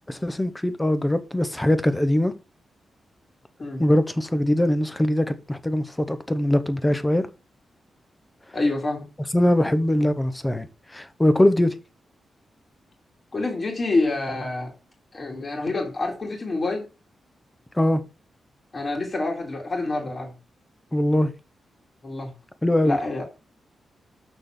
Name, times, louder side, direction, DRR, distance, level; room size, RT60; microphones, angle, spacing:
voice 1, 0.1-2.3 3.8-7.3 9.3-10.7 10.9-11.7 17.8-18.0 20.9-21.3 22.6-23.0, left 1 dB, 10° left, 0.9 m, -21 dB
voice 2, 8.5-9.1 13.3-14.7 15.1-16.9 18.7-20.3 22.0-22.3 22.8-23.2, left 2 dB, 30° left, 2.2 m, -27 dB
6.8 x 6.1 x 5.9 m
wide cardioid pair, 145°, 0 cm